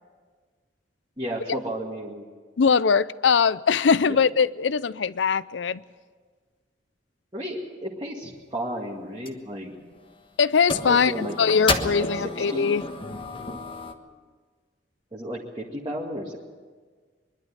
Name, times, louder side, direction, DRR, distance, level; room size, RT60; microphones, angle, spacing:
voice 1, 1.2-2.2 4.0-4.2 7.3-9.7 10.9-11.3 12.0-12.8 15.1-16.4, right 1 dB, 25° right, 2.1 m, -33 dB
voice 2, 2.6-5.8 10.4-12.8, left 6 dB, 85° left, 0.5 m, -21 dB
sound 1, 8.2-8.4 9.2-9.4 9.7-10.3 10.7-13.9, left 3 dB, 30° left, 1.3 m, -31 dB
23.5 x 11.5 x 9.9 m
head